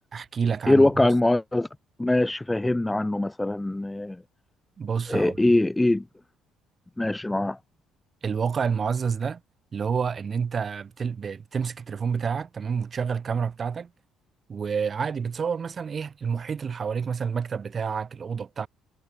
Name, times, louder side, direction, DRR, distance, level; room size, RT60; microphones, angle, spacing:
voice 1, 0.1-1.1 4.8-5.5 8.2-9.4 9.7-13.9 14.5-18.7, right 6 dB, 25° right, 6.0 m, -29 dB
voice 2, 0.7-1.7 2.0-4.2 5.1-6.0 7.0-7.6, left 2 dB, 5° left, 0.5 m, -22 dB
cardioid pair, 180°, 0 cm